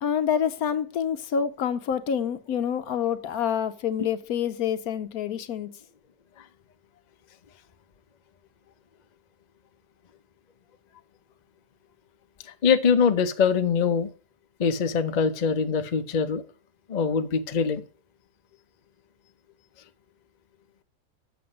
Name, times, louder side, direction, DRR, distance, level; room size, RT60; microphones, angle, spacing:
voice 1, 0.0-5.8, left 8 dB, 70° left, 1.1 m, -27 dB
voice 2, 12.5-14.1 14.6-16.4 16.9-17.8, left 6 dB, 40° left, 0.6 m, -23 dB
7.8 x 6.8 x 5.2 m
omnidirectional pair, 1.8 m